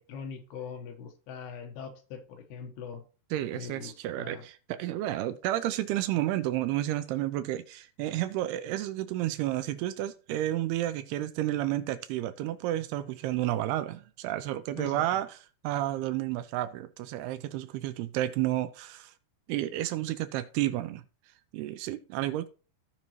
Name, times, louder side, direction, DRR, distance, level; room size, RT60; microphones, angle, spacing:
voice 1, 0.0-3.0 3.5-4.4 14.8-15.0, left 6 dB, 75° left, 3.2 m, -42 dB
voice 2, 3.3-19.1 19.5-21.0 21.5-22.5, right 14 dB, 80° right, 2.5 m, -31 dB
15.5 x 5.3 x 3.1 m
omnidirectional pair, 4.8 m